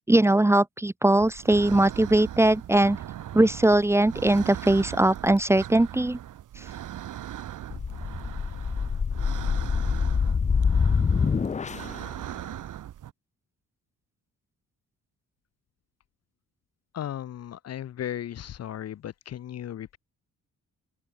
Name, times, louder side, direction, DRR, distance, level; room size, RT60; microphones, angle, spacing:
voice 1, 0.1-3.0 3.3-6.2, right 1 dB, 10° right, 0.9 m, -20 dB
sound 1, 1.2-13.1, right 11 dB, 75° right, 4.7 m, -39 dB
sound 2, 7.7-12.0, left 5 dB, 25° left, 0.7 m, -25 dB
voice 2, 16.9-20.0, left 11 dB, 55° left, 0.9 m, -36 dB
open air
wide cardioid pair, 170°, 31 cm